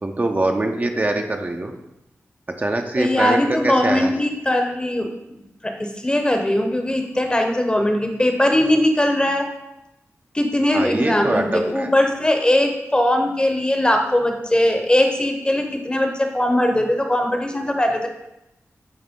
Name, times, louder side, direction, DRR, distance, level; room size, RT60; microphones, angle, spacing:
voice 1, 0.0-1.7 2.6-3.4 3.6-4.1 10.7-11.9, right 2 dB, 30° right, 3 dB, 0.6 m, -23 dB
voice 2, 3.0-9.5 10.3-18.1, left 1 dB, 15° left, 4 dB, 0.8 m, -20 dB
8.8 x 3.2 x 3.6 m, 0.89 s
wide cardioid pair, 90°, 5 cm